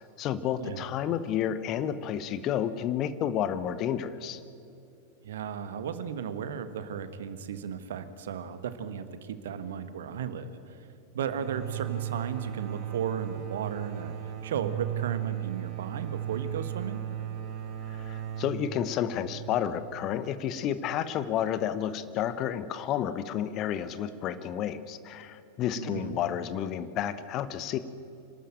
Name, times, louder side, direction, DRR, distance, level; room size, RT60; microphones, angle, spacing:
voice 1, 0.2-4.4 17.9-27.8, left 10 dB, 35° left, 13 dB, 1.0 m, -31 dB
voice 2, 5.2-10.9 11.1-17.0 25.8-26.2, right 7 dB, 60° right, 11 dB, 1.3 m, -35 dB
sound 1, 11.3-20.8, right 11 dB, 40° right, 2.2 m, -36 dB
26.0 x 12.5 x 9.0 m, 2.6 s
figure-of-eight pair, 90°, 0 cm